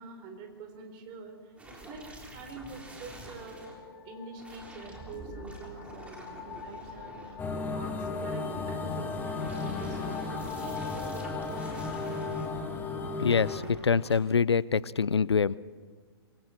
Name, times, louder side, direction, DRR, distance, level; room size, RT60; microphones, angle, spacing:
voice 1, 0.0-1.3 1.7-3.6 4.0-10.5, right 4 dB, 35° right, 5 dB, 4.0 m, -46 dB
sound 1, 1.6-3.7 4.4-7.8 9.1-12.5 13.4-14.2, right 1 dB, 10° right, 3.7 m, -48 dB
sound 2, 2.1-13.6, left 6 dB, 45° left, 2.7 m, -45 dB
sound 3, 7.4-13.6, left 3 dB, 15° left, 2.3 m, -34 dB
voice 2, 13.2-15.6, left 5 dB, 85° left, 22 dB, 0.5 m, -25 dB
26.5 x 22.5 x 4.4 m, 1.5 s
figure-of-eight pair, 120°, 14 cm